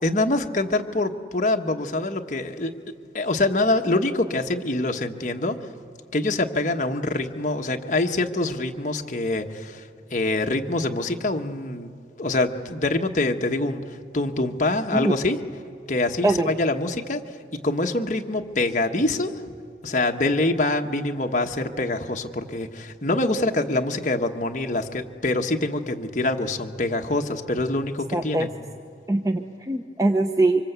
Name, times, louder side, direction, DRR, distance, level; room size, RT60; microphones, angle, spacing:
voice 1, 0.0-2.7 3.1-5.6 6.1-15.4 15.9-17.2 17.6-19.5 19.8-28.5, left 2 dB, 45° left, 4 dB, 1.3 m, -25 dB
voice 2, 28.1-28.5 29.1-30.6, right 2 dB, 20° right, 6 dB, 0.7 m, -22 dB
27.0 x 25.5 x 8.2 m, 2.3 s
head